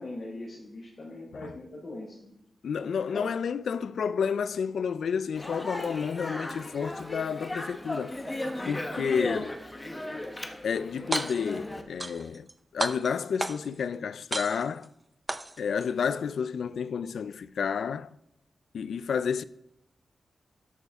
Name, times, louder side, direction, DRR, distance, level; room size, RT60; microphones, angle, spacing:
voice 1, 0.0-2.3 2.8-3.3, left 2 dB, 45° left, 3.2 m, -41 dB
voice 2, 2.6-8.2 8.7-9.6 10.6-12.5 12.7-14.9 15.6-18.1 18.7-19.4, left 6 dB, 90° left, 0.4 m, -30 dB
Speech, 5.3-11.8, left 1 dB, 15° left, 1.1 m, -36 dB
sound 1, 11.0-11.6 12.0-12.5 12.8-13.8 14.3-14.9 15.3-15.9, right 2 dB, 20° right, 0.6 m, -33 dB
12.5 x 11.5 x 3.6 m
wide cardioid pair, 150°, 0 cm